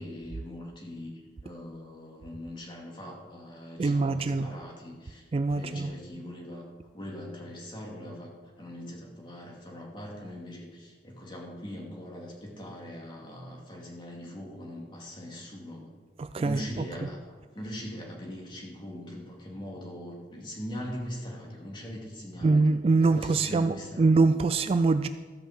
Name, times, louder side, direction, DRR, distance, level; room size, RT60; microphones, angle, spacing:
voice 1, 0.0-6.7 6.9-15.9 16.4-22.6 23.0-24.2, left 1 dB, 25° left, -2 dB, 2.4 m, -41 dB
voice 2, 3.8-4.5 5.3-5.9 16.2-16.6 17.0-17.1 22.4-25.1, right 3 dB, 35° right, 11 dB, 0.3 m, -24 dB
14.0 x 5.6 x 7.3 m, 1.4 s
head